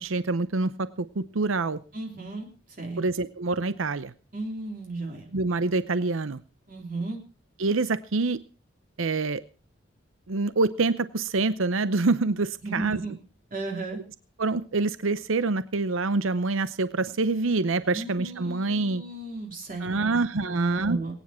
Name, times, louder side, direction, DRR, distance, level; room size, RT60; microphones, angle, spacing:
voice 1, 0.0-1.8 3.0-4.1 5.3-6.4 7.6-8.4 9.0-9.4 10.3-13.0 14.4-19.0 19.8-21.1, right 3 dB, 90° right, 14 dB, 0.7 m, -26 dB
voice 2, 1.9-2.5 2.8-3.0 4.3-5.3 6.7-7.2 12.6-13.1 13.5-14.0 17.9-21.1, right 2 dB, 45° right, 1 dB, 3.4 m, -35 dB
23.0 x 10.0 x 4.4 m, 0.36 s
head